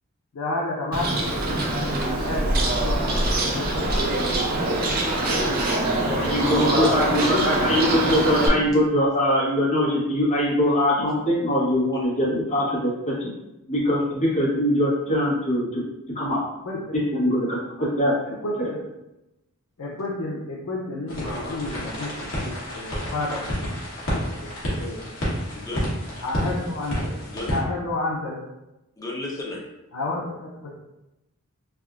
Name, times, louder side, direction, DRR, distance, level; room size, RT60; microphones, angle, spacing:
voice 1, 0.3-2.9 3.4-4.1 6.0-7.1 7.3-7.8 16.6-17.0 17.8-17.9 18.3-18.8 19.8-23.7 24.1-24.3 24.6-25.0 26.2-27.2 27.5-28.4 29.9-30.7, left 2 dB, 90° left, -5 dB, 0.6 m, -30 dB
Bird, 0.9-8.5, right 1 dB, 45° right, 0.5 m, -24 dB
voice 2, 6.1-13.3 13.7-15.8 16.1-16.4 17.1-18.1, equal, 35° left, -7 dB, 1.1 m, -22 dB
sound 1, 21.1-27.6, equal, 60° left, 1.1 m, -30 dB
voice 3, 29.0-29.7, left 2 dB, 15° left, -3 dB, 0.6 m, -33 dB
3.4 x 2.5 x 2.4 m, 0.94 s
head